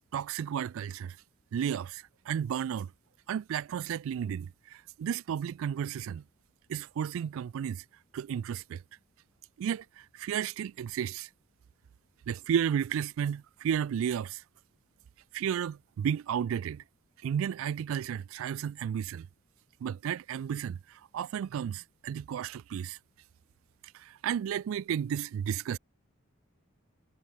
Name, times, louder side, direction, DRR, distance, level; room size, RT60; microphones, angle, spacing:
voice 1, 0.1-1.2 1.5-2.9 3.3-6.2 6.7-7.8 8.1-8.8 9.6-9.8 10.1-11.3 12.3-14.4 15.3-16.8 17.2-19.3 19.8-20.8 21.1-23.0 23.9-25.8, right 8 dB, 70° right, 0.3 m, -33 dB
head